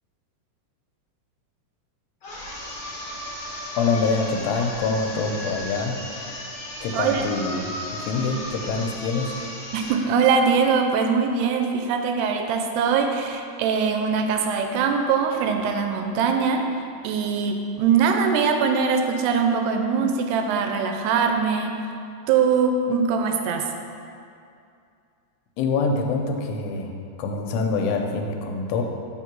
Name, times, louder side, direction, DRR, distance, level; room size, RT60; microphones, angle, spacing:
sound 1, 2.2-10.0, left 1 dB, 55° left, 1.8 m, -35 dB
voice 1, 3.8-6.1 6.8-9.4 25.6-26.9 27.2-28.8, left 4 dB, 85° left, 2 dB, 2.7 m, -25 dB
voice 2, 6.9-7.2 9.7-16.6 17.0-21.8 22.3-23.7, right 6 dB, 85° right, 4 dB, 2.5 m, -22 dB
7.0 x 3.7 x 6.0 m, 2.5 s
omnidirectional pair, 4.8 m